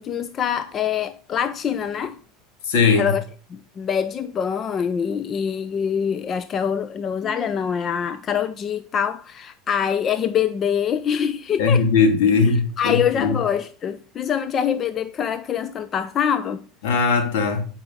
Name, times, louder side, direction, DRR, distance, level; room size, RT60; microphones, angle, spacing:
voice 1, 0.0-2.2 3.0-3.2 3.5-11.8 12.8-16.6, left 8 dB, 35° left, 0.6 m, -24 dB
voice 2, 2.7-3.1 11.6-13.4 16.8-17.6, left 5 dB, 75° left, 2.3 m, -19 dB
9.4 x 5.5 x 5.5 m
supercardioid pair, 115°, 0 cm